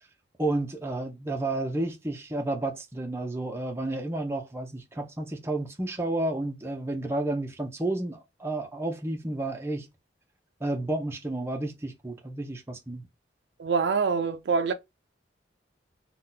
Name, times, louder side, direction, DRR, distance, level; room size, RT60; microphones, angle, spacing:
voice 1, 0.4-9.9 10.6-13.1, right 2 dB, 15° right, 0.5 m, -31 dB
voice 2, 13.6-14.7, right 5 dB, 70° right, 0.4 m, -25 dB
2.7 x 2.2 x 3.8 m
head